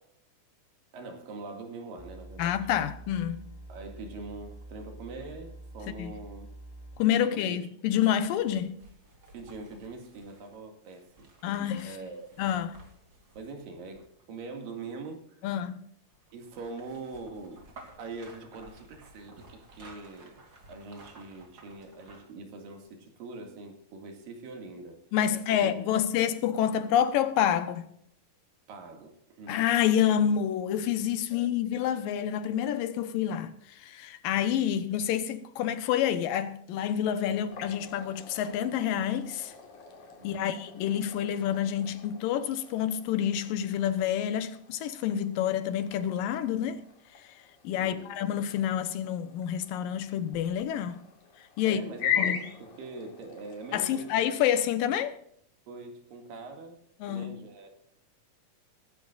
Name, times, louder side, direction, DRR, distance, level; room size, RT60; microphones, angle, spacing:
voice 1, 0.9-2.6 3.7-6.5 7.2-7.6 9.3-11.3 11.8-12.4 13.4-15.4 16.3-17.6 18.0-20.4 20.7-25.0 25.3-26.0 28.7-29.6 31.3-31.5 40.2-40.5 47.8-48.1 51.6-54.4 55.7-56.8 57.0-57.7, right 3 dB, 85° right, 3.9 m, -43 dB
sound 1, 2.0-7.0, right 1 dB, 5° left, 2.3 m, -46 dB
voice 2, 2.4-3.4 5.9-6.1 7.0-8.8 11.4-11.9 12.4-12.8 15.4-15.7 25.1-27.9 29.5-39.5 40.2-46.8 47.6-51.0 51.6-51.8 52.2-52.4 53.7-55.2 57.0-57.4, left 10 dB, 90° left, 2.8 m, -28 dB
sound 2, 8.3-14.4 16.1-22.4 22.8-22.9, right 2 dB, 35° right, 3.4 m, -54 dB
sound 3, 37.5-54.6, left 8 dB, 65° left, 3.9 m, -40 dB
22.5 x 12.0 x 2.5 m
omnidirectional pair, 3.8 m